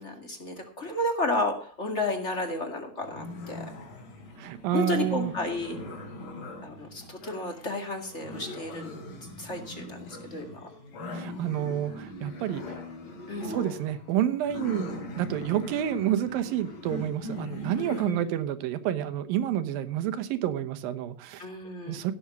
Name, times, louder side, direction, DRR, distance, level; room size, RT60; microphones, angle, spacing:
voice 1, 0.0-3.7 4.7-5.8 6.6-8.9 9.4-10.7 13.3-13.5 17.8-18.3 21.4-22.0, left 2 dB, 25° left, 4 dB, 1.7 m, -32 dB
sound 1, 3.0-18.2, left 1 dB, 85° left, 5.1 m, -41 dB
voice 2, 4.4-5.3 11.1-12.8 13.4-21.5 21.9-22.1, right 11 dB, 85° right, 10 dB, 2.8 m, -29 dB
16.5 x 7.0 x 6.1 m, 0.42 s
omnidirectional pair, 4.0 m